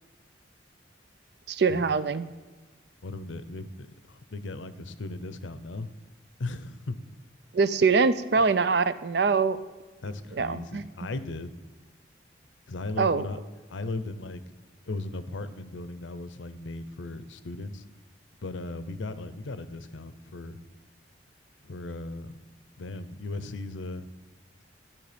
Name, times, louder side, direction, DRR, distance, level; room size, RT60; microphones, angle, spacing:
voice 1, 1.5-2.2 7.5-9.6 10.3-10.8 13.0-13.3, right 4 dB, 60° right, 14 dB, 0.5 m, -23 dB
voice 2, 3.0-5.9 6.4-7.0 8.4-8.5 10.0-11.5 12.7-13.4 13.7-14.4 14.9-17.8 18.4-20.6 21.6-22.3 22.8-24.1, left 2 dB, 90° left, 13 dB, 0.7 m, -37 dB
12.5 x 7.2 x 5.1 m, 1.3 s
head